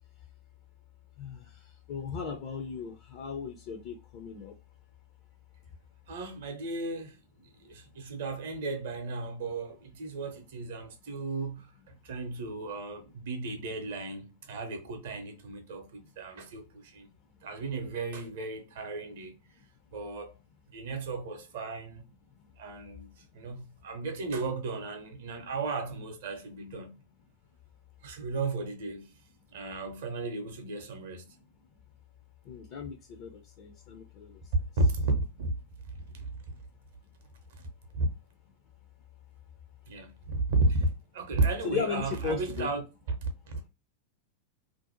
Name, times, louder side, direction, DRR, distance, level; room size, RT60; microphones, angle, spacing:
voice 1, 1.9-4.5 32.5-34.4 41.6-42.7, left 6 dB, 45° left, 0.4 m, -36 dB
voice 2, 6.1-17.1 17.4-19.4 19.9-20.4 20.7-22.0 22.6-27.0 28.0-29.1 29.5-31.3 34.8-35.5 35.9-36.6 37.5-37.6 37.9-38.1 39.9-43.2 43.5-43.7, right 2 dB, 55° right, 0.6 m, -34 dB
2.5 x 2.0 x 2.8 m
figure-of-eight pair, 90°, 0 cm